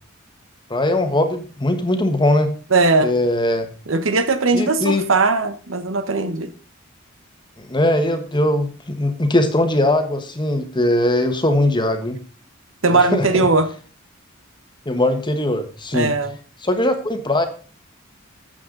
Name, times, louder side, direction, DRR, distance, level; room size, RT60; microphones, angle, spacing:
voice 1, 0.7-2.5 3.0-3.7 4.5-5.0 7.6-12.2 12.9-13.5 14.8-16.1 16.6-17.5, left 1 dB, 25° left, 7 dB, 1.5 m, -20 dB
voice 2, 2.7-3.1 3.9-6.5 12.8-13.7 15.9-16.3, right 3 dB, 75° right, 10 dB, 1.2 m, -18 dB
12.5 x 8.2 x 4.0 m, 0.39 s
head